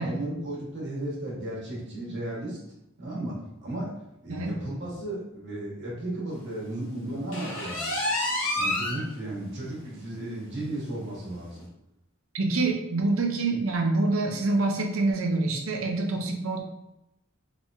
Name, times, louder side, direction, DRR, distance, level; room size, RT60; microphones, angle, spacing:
voice 1, 0.0-2.6 3.0-3.9 4.2-8.0 8.6-11.7, right 1 dB, 55° right, -5 dB, 1.3 m, -34 dB
sound 1, 7.3-9.0 9.5-9.6 10.0-10.1 10.5-10.6 11.5-11.6, left 1 dB, 65° left, 1.2 m, -28 dB
voice 2, 12.3-16.6, right 3 dB, 70° right, 2 dB, 0.6 m, -26 dB
3.5 x 3.0 x 2.6 m, 0.88 s
head